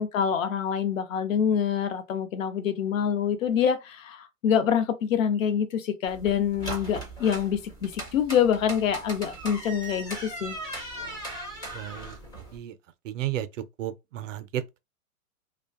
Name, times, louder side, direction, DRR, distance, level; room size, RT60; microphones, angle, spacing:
voice 1, 0.0-10.6, left 8 dB, 60° left, 0.7 m, -26 dB
sound 1, 6.1-12.6, right 1 dB, 10° left, 0.5 m, -38 dB
voice 2, 11.7-12.2 12.5-12.7 13.0-13.5 13.8-14.8, right 12 dB, 60° right, 0.5 m, -33 dB
2.4 x 2.2 x 2.3 m
hypercardioid pair, 125°, 44 cm